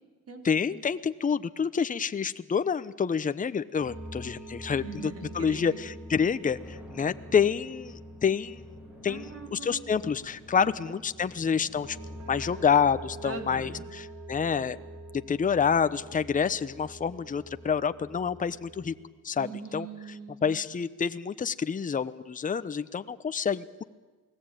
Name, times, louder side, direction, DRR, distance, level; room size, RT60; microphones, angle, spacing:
voice 1, 0.4-4.8 5.3-8.6 9.0-12.0 12.3-14.8 15.3-18.9 19.2-19.9 20.4-23.8, left 6 dB, 25° left, 12 dB, 0.8 m, -28 dB
sound 1, 3.8-19.0, right 1 dB, 65° right, 4.3 m, -45 dB
voice 2, 4.8-5.8 9.1-9.8 10.5-11.0 13.2-13.9 19.4-20.6, right 5 dB, 50° right, 5 dB, 4.0 m, -41 dB
Thunder, 6.3-13.9, left 1 dB, 5° right, 7.5 m, -54 dB
28.5 x 18.5 x 9.1 m, 1.3 s
cardioid pair, 90°, 30 cm